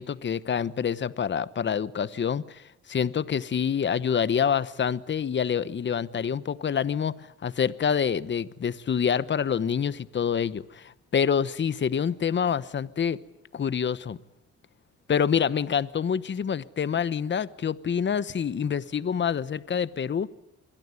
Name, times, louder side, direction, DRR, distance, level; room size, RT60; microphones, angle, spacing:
voice 1, 0.0-2.6 2.9-13.2 13.5-14.2 15.1-20.3, left 7 dB, 40° left, 17 dB, 1.0 m, -27 dB
25.5 x 22.0 x 9.7 m, 0.83 s
cardioid pair, 90°, 30 cm